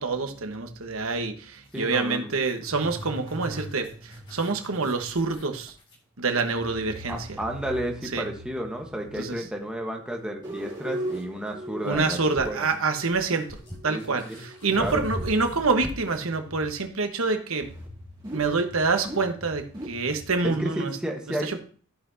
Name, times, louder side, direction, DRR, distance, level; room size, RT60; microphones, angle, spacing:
voice 1, 0.0-5.7 6.2-7.3 8.1-8.3 9.2-9.4 11.8-13.5 13.8-17.7 18.3-20.9 21.4-21.6, right 4 dB, 70° right, 6 dB, 1.2 m, -26 dB
sound 1, 1.5-6.1 8.4-8.5 10.5-16.3, equal, 25° left, 2.3 m, -46 dB
voice 2, 1.7-2.3 7.1-12.2 12.4-12.7 13.3-13.4 13.9-14.4 14.8-15.0 20.4-21.5, right 1 dB, 5° right, 1 dB, 1.2 m, -32 dB
sound 2, 2.7-5.3 6.6-9.8 10.4-16.9 17.6-20.6, equal, 20° right, 2.8 m, -40 dB
14.0 x 5.8 x 2.7 m, 0.42 s
head